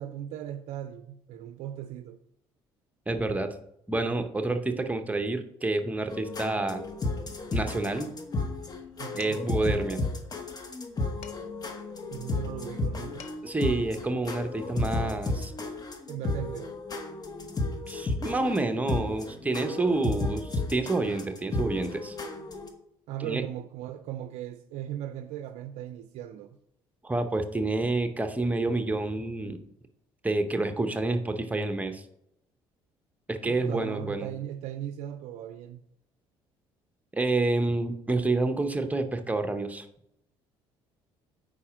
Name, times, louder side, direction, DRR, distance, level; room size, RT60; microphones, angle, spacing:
voice 1, 0.0-2.2 9.0-9.4 12.1-13.3 16.1-16.7 23.1-26.6 33.4-35.8, right 11 dB, 75° right, 0.4 m, -38 dB
voice 2, 3.1-3.5 3.9-6.8 7.5-8.1 9.1-10.0 13.4-15.5 17.9-22.2 23.2-23.4 27.0-29.6 30.2-32.0 33.3-34.3 37.1-39.9, right 2 dB, 15° right, 0.8 m, -28 dB
sound 1, 6.1-22.7, left 2 dB, 35° left, 1.0 m, -33 dB
Dishes pots and pans, 9.2-9.6 11.2-11.7 12.9-13.0 13.2-13.7, left 8 dB, 70° left, 0.6 m, -49 dB
4.9 x 4.2 x 5.0 m
supercardioid pair, 75°, 12 cm